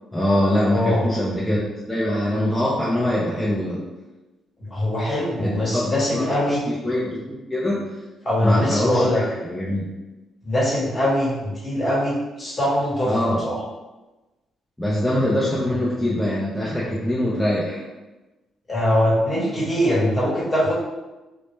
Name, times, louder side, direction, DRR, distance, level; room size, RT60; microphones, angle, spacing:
voice 1, 0.1-3.8 5.4-7.8 8.4-9.9 13.1-13.4 14.8-17.8, left 1 dB, 5° left, -7 dB, 0.4 m, -23 dB
voice 2, 0.7-1.0 4.6-6.6 8.2-9.2 10.4-13.1 13.4-13.6 18.7-20.7, left 1 dB, 30° left, -7 dB, 1.0 m, -22 dB
2.1 x 2.0 x 3.1 m, 1.1 s
cardioid pair, 90°, 0 cm